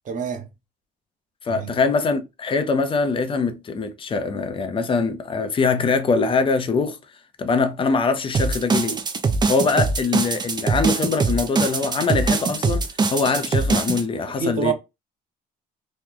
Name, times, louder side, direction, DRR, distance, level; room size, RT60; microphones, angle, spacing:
voice 1, 0.0-0.5 1.5-1.8 14.2-14.7, right 6 dB, 50° right, 1.0 m, -27 dB
voice 2, 1.4-7.0 7.4-9.0 9.5-14.7, left 4 dB, 30° left, 0.6 m, -23 dB
sound 1, 8.3-14.0, right 4 dB, 25° right, 0.5 m, -22 dB
3.0 x 2.1 x 3.8 m
cardioid pair, 110°, 17 cm